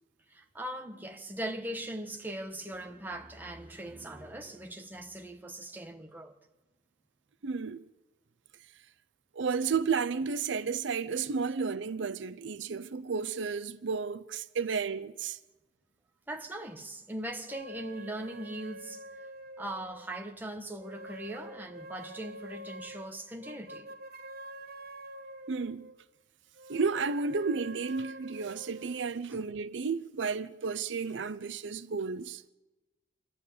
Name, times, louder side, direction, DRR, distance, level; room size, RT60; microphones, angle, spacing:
voice 1, 0.3-6.3 16.3-19.0 19.6-23.9, right 1 dB, 10° right, 1.3 m, -40 dB
voice 2, 7.4-7.8 9.3-15.4 25.5-25.9 26.7-32.4, right 5 dB, 75° right, 0.6 m, -32 dB
sound 1, 17.5-20.3 20.8-26.0 26.6-29.0, right 1 dB, 50° right, 1.0 m, -46 dB
26.5 x 11.5 x 8.4 m
head